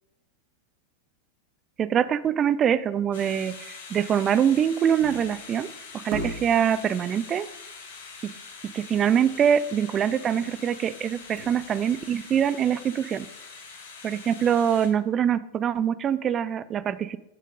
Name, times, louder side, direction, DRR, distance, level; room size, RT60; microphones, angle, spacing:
voice 1, 1.8-7.5 8.7-13.3 14.0-17.2, right 8 dB, 25° right, 17 dB, 0.4 m, -24 dB
sound 1, 3.1-14.9, left 4 dB, 60° left, 1.9 m, -44 dB
sound 2, 5.0-5.5 6.1-6.8 9.2-9.4 9.7-9.8 10.3-10.6 11.1-12.0 12.4-12.5, right 3 dB, 50° right, 1.9 m, -37 dB
9.0 x 7.4 x 3.7 m, 0.91 s
figure-of-eight pair, 90°, 0 cm